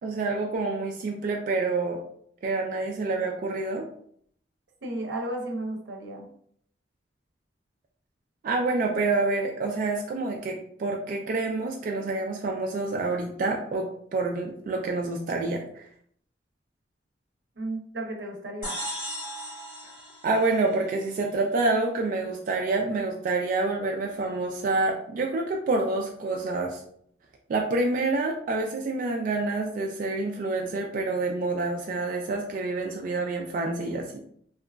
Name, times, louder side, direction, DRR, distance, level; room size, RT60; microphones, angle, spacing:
voice 1, 0.0-2.0 2.4-3.9 8.4-15.9 20.2-26.8 27.5-34.2, right 3 dB, 50° right, 1 dB, 0.3 m, -27 dB
voice 2, 4.8-6.3 17.6-18.8, right 1 dB, 85° right, 2 dB, 0.6 m, -33 dB
sound 1, 18.6-21.2, equal, 25° left, 1.1 m, -37 dB
2.8 x 2.3 x 2.2 m, 0.65 s
head